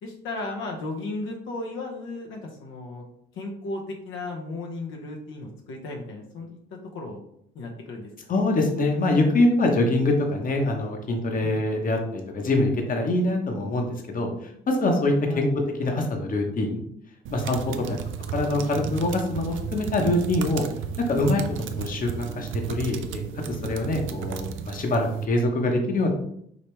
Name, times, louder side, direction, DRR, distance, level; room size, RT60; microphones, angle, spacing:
voice 1, 0.0-3.0 3.3-6.6 6.9-7.2 7.5-8.4 11.4-11.6 15.3-15.5 17.7-18.0 21.5-21.6, left 2 dB, 80° left, 0 dB, 0.9 m, -35 dB
voice 2, 8.3-15.5 15.8-16.8 17.3-17.7 18.3-20.6 21.1-21.4 21.8-23.2 23.5-26.1, left 2 dB, 45° left, 2 dB, 1.0 m, -24 dB
sound 1, 17.2-25.2, right 7 dB, 80° right, 0.5 m, -33 dB
5.1 x 2.8 x 3.3 m, 0.70 s
cardioid pair, 90°, 20 cm